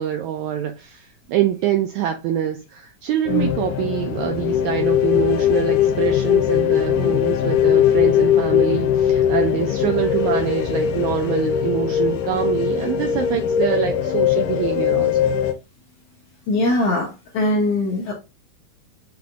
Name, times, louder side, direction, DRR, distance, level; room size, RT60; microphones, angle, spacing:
voice 1, 0.0-15.3, right 10 dB, 80° right, 1.7 m, -25 dB
sound 1, 3.3-15.5, left 9 dB, 85° left, 2.3 m, -20 dB
voice 2, 16.5-18.1, left 2 dB, 65° left, 1.6 m, -21 dB
5.8 x 2.5 x 3.4 m
omnidirectional pair, 3.9 m